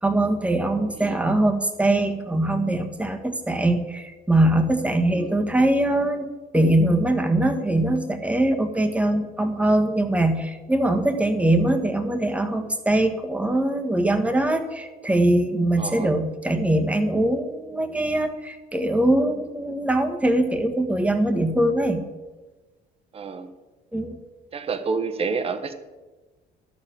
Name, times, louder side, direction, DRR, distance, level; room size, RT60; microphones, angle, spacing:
voice 1, 0.0-22.0 23.9-24.2, right 1 dB, 10° right, 6 dB, 1.4 m, -22 dB
voice 2, 15.8-16.1 23.1-23.5 24.5-25.7, right 4 dB, 35° right, 8 dB, 1.1 m, -29 dB
12.0 x 6.8 x 7.4 m, 1.2 s
cardioid pair, 110°, 17 cm